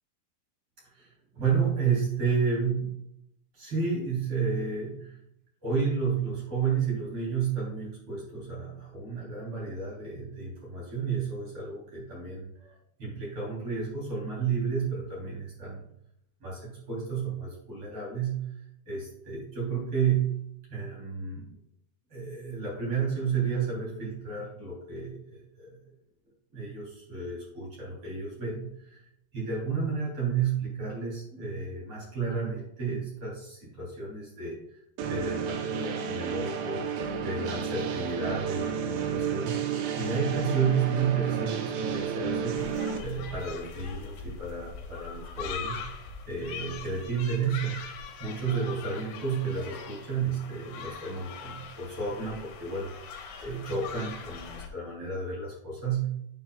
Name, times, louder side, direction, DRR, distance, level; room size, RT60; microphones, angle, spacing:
voice 1, 0.9-2.9 3.5-5.2 5.6-15.8 16.4-18.4 18.9-20.3 20.7-21.5 22.1-25.8 26.5-29.0 29.3-34.8 35.1-37.0 37.2-39.7 40.0-42.6 43.0-45.8 46.3-47.8 48.2-56.1, right 5 dB, 35° right, -4 dB, 3.6 m, -31 dB
sound 1, 35.0-43.0, right 6 dB, 75° right, 2.8 m, -31 dB
sound 2, 42.6-54.7, left 5 dB, 80° left, 3.4 m, -41 dB
9.5 x 7.2 x 2.3 m, 0.75 s
omnidirectional pair, 5.4 m